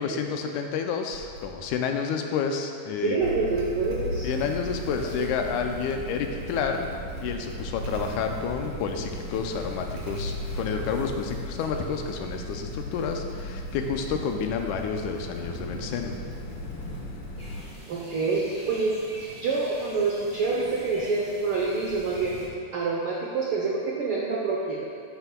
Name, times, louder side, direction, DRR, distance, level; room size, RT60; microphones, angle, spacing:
voice 1, 0.0-3.2 4.2-6.9 7.2-16.1, left 6 dB, 85° left, 4 dB, 2.0 m, -30 dB
Motorcycle / Engine starting, 1.1-1.8 3.1-18.0, right 4 dB, 65° right, 1.9 m, -41 dB
voice 2, 3.0-4.3 4.9-5.3 17.9-18.9 19.4-22.4 22.7-24.8, right 4 dB, 85° right, -3 dB, 1.1 m, -27 dB
sound 1, 3.2-17.6, left 3 dB, 65° left, 2.0 m, -37 dB
sound 2, 17.4-22.5, right 1 dB, 10° right, 1.4 m, -44 dB
11.0 x 8.2 x 2.3 m, 2.3 s
omnidirectional pair, 3.5 m